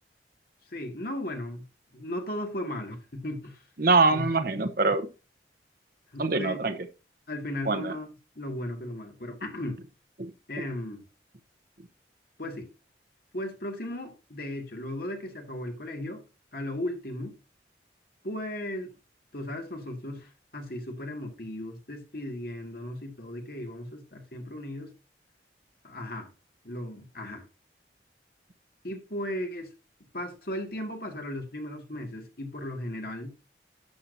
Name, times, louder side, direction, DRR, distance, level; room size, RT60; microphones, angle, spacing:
voice 1, 0.7-1.7 1.9-3.6 4.1-4.3 6.1-6.6 7.3-8.1 8.4-9.8 10.5-11.0 12.4-12.7 13.3-16.3 16.5-17.4 18.2-18.9 19.3-24.9 25.8-26.3 26.6-27.5 28.8-29.7 30.1-33.3, left 1 dB, 55° left, 2.1 m, -36 dB
voice 2, 3.8-5.1 6.2-6.8 7.7-7.9 10.2-10.3, right 3 dB, 55° right, 1.0 m, -24 dB
11.5 x 7.3 x 2.7 m
head